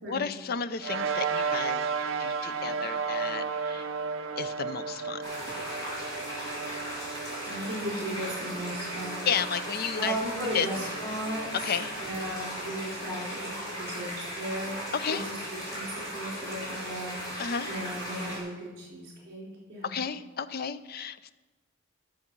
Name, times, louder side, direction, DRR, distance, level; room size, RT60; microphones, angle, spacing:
voice 1, 0.1-1.9 2.2-3.9 4.4-5.2 9.3-10.2 10.5-10.7 11.6-11.9 14.9-15.2 17.4-17.7 19.8-21.3, left 6 dB, 45° left, 14 dB, 0.4 m, -32 dB
sound 1, 0.8-13.5, right 5 dB, 70° right, 0.5 m, -35 dB
voice 2, 2.5-2.9 7.4-9.4 9.9-11.5 11.9-15.9 16.1-20.0, right 1 dB, 50° right, -4 dB, 3.8 m, -36 dB
sound 2, 5.2-18.4, equal, 20° left, 3.9 m, -37 dB
13.0 x 6.5 x 6.0 m, 1.2 s
head